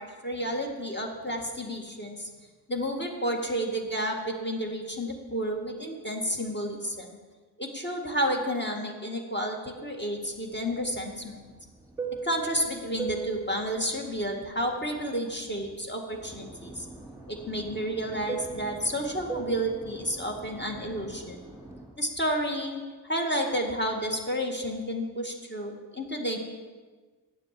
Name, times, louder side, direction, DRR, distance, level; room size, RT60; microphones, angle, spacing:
voice 1, 0.0-2.3 2.7-7.1 7.6-11.5 12.2-16.9 17.3-21.4 22.0-26.4, equal, 25° left, 1 dB, 2.0 m, -31 dB
Fixed-wing aircraft airplane, 10.4-15.7 16.1-21.9, right 5 dB, 5° right, 3.3 m, -40 dB
9.0 x 7.5 x 7.6 m, 1.4 s
cardioid pair, 40°, 42 cm